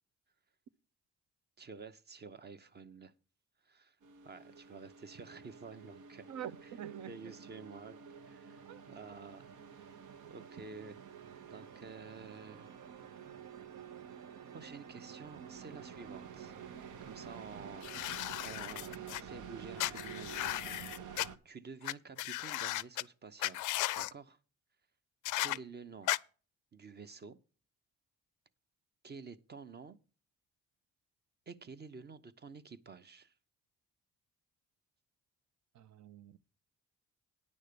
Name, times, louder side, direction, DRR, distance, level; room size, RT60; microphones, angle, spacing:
voice 1, 1.6-3.1 3.6-4.0 4.2-6.3 6.6-6.7 7.1-8.0 8.2-9.5 9.8-10.0 10.2-11.0 11.4-12.8 14.5-16.5 17.0-20.8 21.4-23.7 23.9-24.4 25.4-26.1 26.7-27.4 29.0-30.0 31.5-33.3, right 5 dB, 35° right, 0.7 m, -50 dB
sound 1, 4.0-21.4, right 7 dB, 85° right, 1.1 m, -50 dB
voice 2, 6.3-7.3 8.7-8.8 17.5-17.6 25.4-25.6 35.7-36.4, right 10 dB, 65° right, 0.6 m, -46 dB
sound 2, 17.8-19.2 19.8-21.3 21.8-21.9 22.2-23.0 23.4-24.1 25.2-25.6 26.1-26.2, left 17 dB, 80° left, 0.4 m, -36 dB
9.6 x 6.3 x 6.7 m
cardioid pair, 90°, 30 cm